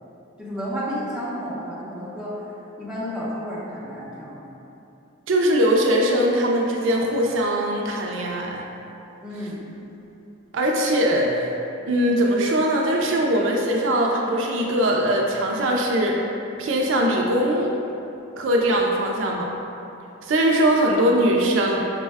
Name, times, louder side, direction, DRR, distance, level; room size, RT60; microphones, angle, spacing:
voice 1, 0.4-4.4 9.2-9.8, equal, 5° right, -9 dB, 0.8 m, -32 dB
voice 2, 5.3-8.6 10.5-11.5 11.9-16.2 16.6-17.8 18.4-19.5 20.2-21.8, right 1 dB, 70° right, -1 dB, 0.4 m, -21 dB
5.3 x 2.2 x 3.4 m, 2.8 s
head